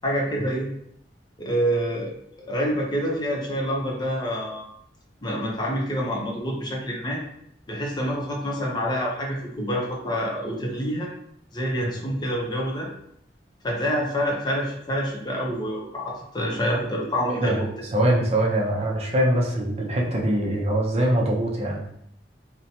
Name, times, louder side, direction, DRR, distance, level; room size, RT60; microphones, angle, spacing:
voice 1, 0.0-0.7 1.4-2.1 2.4-4.6 5.2-7.2 7.7-11.1 11.5-12.9 13.6-17.7, equal, 25° left, -2 dB, 0.6 m, -27 dB
voice 2, 17.3-17.6 17.9-21.8, right 1 dB, 35° right, -1 dB, 0.5 m, -23 dB
2.9 x 2.1 x 2.6 m, 0.72 s
head